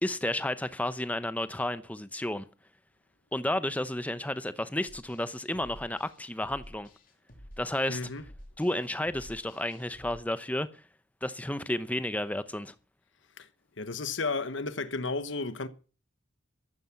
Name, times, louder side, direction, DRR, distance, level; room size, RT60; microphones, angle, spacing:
voice 1, 0.0-2.5 3.3-6.9 7.6-8.0 8.6-10.7 11.2-12.7, left 1 dB, 10° left, 0.7 m, -32 dB
sound 1, 4.9-10.2, equal, 45° left, 3.1 m, -51 dB
voice 2, 7.9-8.2 13.4-13.5 13.8-15.7, left 3 dB, 70° left, 1.2 m, -33 dB
13.5 x 12.0 x 5.9 m
head